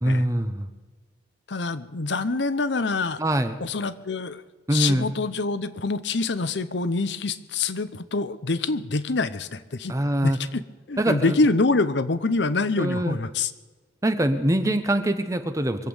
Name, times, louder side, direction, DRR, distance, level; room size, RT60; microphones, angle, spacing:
voice 1, 0.0-0.7 3.2-3.6 4.7-5.1 9.9-10.4 11.0-11.4 12.8-13.2 14.0-15.9, right 1 dB, 15° right, 8 dB, 0.8 m, -23 dB
voice 2, 1.5-3.2 3.6-4.4 4.7-9.9 10.2-10.6 10.9-13.5, left 3 dB, 70° left, 14 dB, 0.8 m, -25 dB
23.5 x 8.4 x 7.1 m, 1.3 s
head